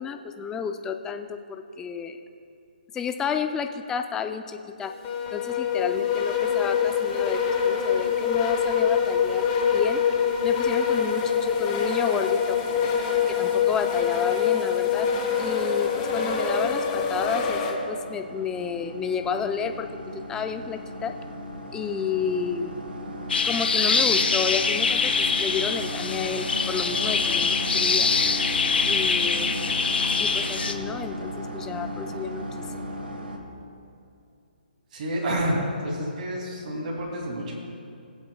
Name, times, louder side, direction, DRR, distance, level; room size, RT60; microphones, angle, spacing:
voice 1, 0.0-2.2 2.9-4.9 5.3-9.4 9.7-10.0 10.4-12.6 13.3-15.1 15.4-21.1 21.7-22.8 23.4-28.1 28.8-29.5 30.2-32.7, left 6 dB, 10° left, 6 dB, 0.4 m, -31 dB
sound 1, 5.0-17.7, left 7 dB, 25° left, 1.1 m, -24 dB
sound 2, 15.9-33.4, equal, 90° right, 1.5 m, -36 dB
sound 3, 23.3-30.7, left 5 dB, 80° left, 0.7 m, -24 dB
voice 2, 34.9-37.6, equal, 50° right, -3 dB, 2.7 m, -29 dB
20.5 x 7.9 x 2.3 m, 2.6 s
hypercardioid pair, 150°, 5 cm